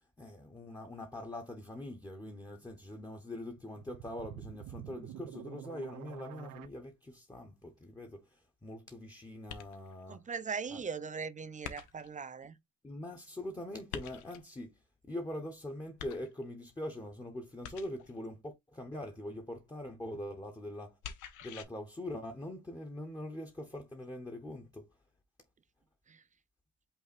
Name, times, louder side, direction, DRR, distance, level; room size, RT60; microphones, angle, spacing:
voice 1, 0.2-10.2 10.7-10.8 12.8-14.7 15.0-21.0 21.4-24.9, left 1 dB, 10° left, 0.9 m, -43 dB
sound 1, 3.5-6.7, right 12 dB, 90° right, 0.5 m, -47 dB
sound 2, 9.5-10.0 11.6-12.2 13.9-14.5 16.0-16.6 17.6-18.2 21.0-21.6, left 8 dB, 85° left, 0.8 m, -45 dB
voice 2, 10.1-12.6 26.1-26.2, right 5 dB, 25° right, 0.5 m, -40 dB
5.5 x 2.2 x 4.2 m
cardioid pair, 90°, 30 cm